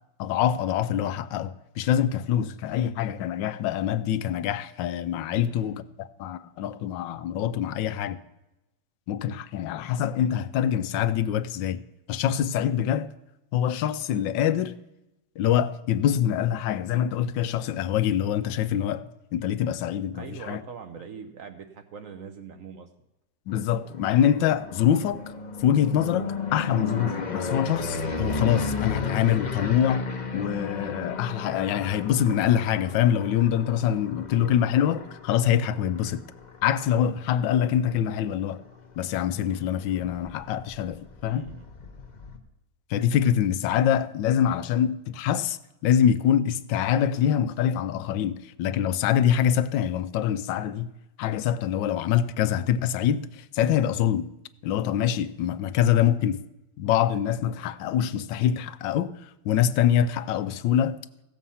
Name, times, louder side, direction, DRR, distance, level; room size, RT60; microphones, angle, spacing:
voice 1, 0.2-8.2 9.1-11.8 12.1-13.1 13.5-14.7 15.4-20.6 23.5-25.2 25.6-30.1 30.3-36.2 36.6-38.6 39.0-41.5 42.9-50.9 51.2-54.3 54.6-56.4 56.8-61.0, left 10 dB, 80° left, 1.3 m, -25 dB
voice 2, 5.3-5.8 20.1-22.9 41.2-41.7, right 6 dB, 60° right, 1.0 m, -42 dB
sound 1, 23.8-37.7 38.2-38.7 38.9-39.0 39.3-39.4 39.6-42.4, left 4 dB, 35° left, 0.7 m, -34 dB
15.5 x 7.4 x 5.6 m
omnidirectional pair, 2.0 m